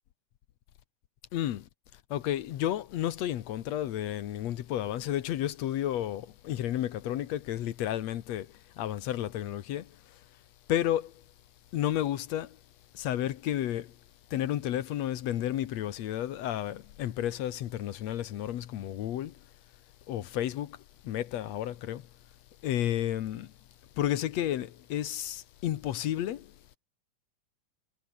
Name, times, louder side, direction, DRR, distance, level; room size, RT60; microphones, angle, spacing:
voice 1, 1.3-1.7 2.1-9.9 10.7-11.1 11.7-12.6 12.9-13.9 14.3-19.4 20.1-20.8 21.0-22.1 22.6-23.5 24.0-26.5, left 12 dB, 65° left, 2.2 m, -32 dB
omnidirectional pair, 3.4 m